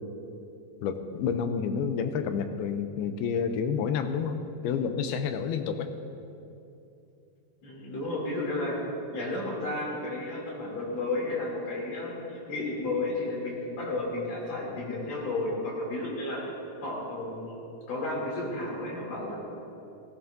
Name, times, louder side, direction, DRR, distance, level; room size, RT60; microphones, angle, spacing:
voice 1, 0.8-4.4 4.6-5.9, left 6 dB, 85° left, 8 dB, 2.6 m, -29 dB
voice 2, 7.6-8.8 9.1-16.4 16.8-19.4, left 2 dB, 45° left, -4 dB, 3.9 m, -32 dB
18.0 x 16.5 x 2.7 m, 2.8 s
omnidirectional pair, 4.5 m